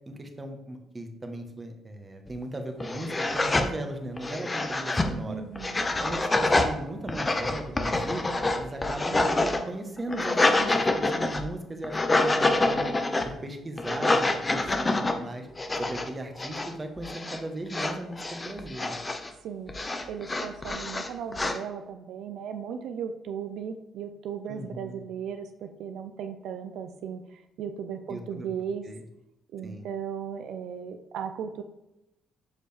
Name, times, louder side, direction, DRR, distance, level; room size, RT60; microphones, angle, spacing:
voice 1, 0.1-5.4 6.0-8.2 8.6-12.9 13.2-15.5 15.8-19.0 24.5-25.1 28.1-28.5 28.9-29.0 29.6-29.8, right 1 dB, 25° right, 5 dB, 1.1 m, -37 dB
sound 1, 2.3-2.4 2.8-3.7 4.2-5.1 5.6-6.7 7.1-9.6 10.0-11.5 11.8-13.3 13.8-15.1 15.6-16.1 16.4-16.7 17.0-17.4 17.7-19.3 19.7-21.6, left 2 dB, 25° left, 0.8 m, -26 dB
voice 2, 5.3-5.9 19.4-19.7 20.1-28.8 29.5-31.6, right 7 dB, 80° right, 7 dB, 0.4 m, -36 dB
6.8 x 5.0 x 3.3 m, 0.89 s
cardioid pair, 90°, 0 cm